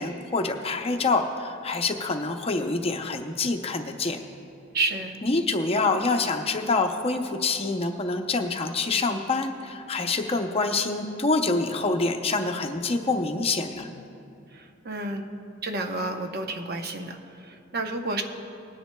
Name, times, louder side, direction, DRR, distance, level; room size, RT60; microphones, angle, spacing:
voice 1, 0.0-4.2 5.2-13.9, left 3 dB, 30° left, 5 dB, 0.6 m, -26 dB
voice 2, 4.7-5.2 14.5-15.2 15.6-18.2, right 2 dB, 55° right, 4 dB, 0.8 m, -30 dB
20.5 x 10.0 x 2.2 m, 2.6 s
head